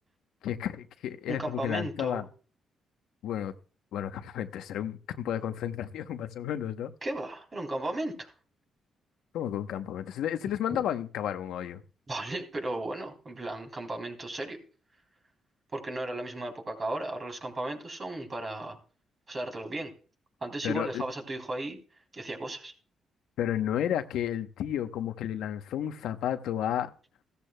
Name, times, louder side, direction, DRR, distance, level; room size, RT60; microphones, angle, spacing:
voice 1, 0.4-2.2 3.2-3.5 3.9-6.9 9.3-11.8 20.6-21.0 23.4-26.9, left 10 dB, 85° left, 0.8 m, -32 dB
voice 2, 1.3-2.2 7.0-8.3 12.1-14.6 15.7-18.8 19.3-19.9 20.4-21.8 22.1-22.7, right 2 dB, 35° right, 3.4 m, -35 dB
15.0 x 13.5 x 2.2 m
cardioid pair, 85°, 0 cm